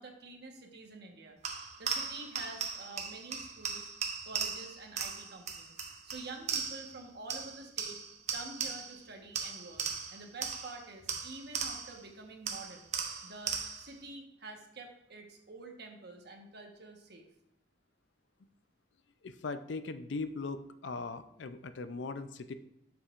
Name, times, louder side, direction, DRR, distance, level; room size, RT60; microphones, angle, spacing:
voice 1, 0.0-1.4 1.8-3.9 4.2-5.7 6.0-8.0 8.3-9.8 10.1-12.9 13.2-17.3, right 3 dB, 60° right, 2 dB, 1.3 m, -48 dB
sound 1, 1.4-7.0 7.3-9.0 9.4-12.0 12.5-14.0, right 6 dB, 40° right, 0.8 m, -38 dB
voice 2, 19.2-22.5, left 3 dB, 70° left, 11 dB, 0.5 m, -39 dB
12.0 x 5.8 x 2.5 m, 0.81 s
head